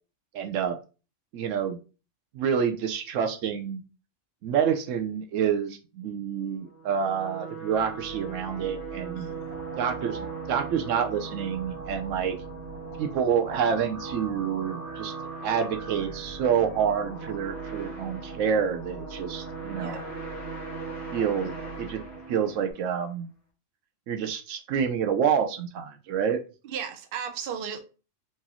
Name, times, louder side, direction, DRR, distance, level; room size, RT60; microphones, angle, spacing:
voice 1, 0.3-0.8 1.3-1.8 2.3-3.8 4.4-9.3 9.8-12.4 13.0-15.1 15.4-20.0 21.1-21.5 21.8-22.0 22.3-23.3 24.1-26.4, right 7 dB, 80° right, 1.0 m, -28 dB
sound 1, 6.6-23.0, right 5 dB, 15° right, 1.4 m, -40 dB
sound 2, 7.7-22.7, right 2 dB, 30° left, 1.9 m, -43 dB
voice 2, 9.1-9.5 19.8-20.0 26.6-27.8, right 7 dB, 55° right, 0.7 m, -35 dB
4.6 x 2.6 x 2.9 m
omnidirectional pair, 1.3 m